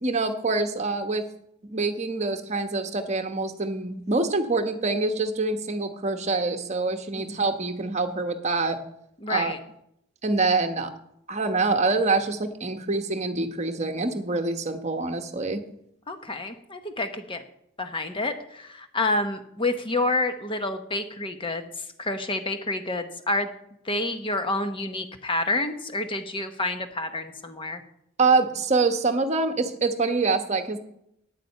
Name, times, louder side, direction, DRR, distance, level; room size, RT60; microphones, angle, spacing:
voice 1, 0.0-1.2 1.7-8.8 9.3-9.5 10.2-10.9 11.3-15.6 28.2-30.8, right 3 dB, 30° right, 6 dB, 1.1 m, -25 dB
voice 2, 9.2-9.6 16.1-17.4 17.8-23.5 23.8-27.8, left 2 dB, 25° left, 7 dB, 1.0 m, -29 dB
9.7 x 7.6 x 8.5 m, 0.76 s
head